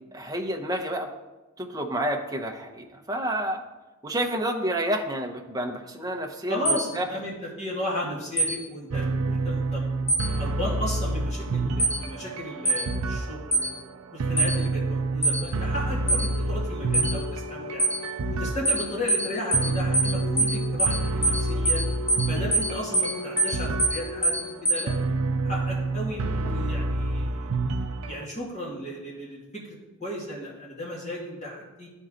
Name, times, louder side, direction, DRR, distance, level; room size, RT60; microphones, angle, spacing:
voice 1, 0.1-1.1 1.6-3.6 4.0-7.1, right 1 dB, 15° right, 3 dB, 0.7 m, -29 dB
voice 2, 6.5-9.8 10.4-13.7 14.1-17.8 18.3-21.8 22.2-25.0 25.4-27.5 28.0-31.9, left 1 dB, 30° left, -4 dB, 2.0 m, -35 dB
sound 1, 6.7-6.8 8.4-8.5 10.1-10.3 11.8-12.0 12.7-12.8 13.5-13.7 14.4-14.5 15.2-15.4 16.1-16.3 16.9-17.1 17.8-18.0 18.7-18.8 19.1-19.3 19.5-19.7 19.9-20.1 20.4-20.5 20.8-21.0 21.2-21.4 21.7-21.8 22.1-22.3 22.5-22.7 22.9-23.1 23.4-23.5 23.8-24.0 24.2-24.4 24.7-24.8, right 2 dB, 10° left, 1.0 m, -22 dB
sound 2, 8.9-28.2, right 3 dB, 80° right, 0.5 m, -29 dB
sound 3, 15.5-24.6, left 4 dB, 50° left, 1.9 m, -39 dB
12.0 x 4.5 x 3.8 m, 1.1 s
head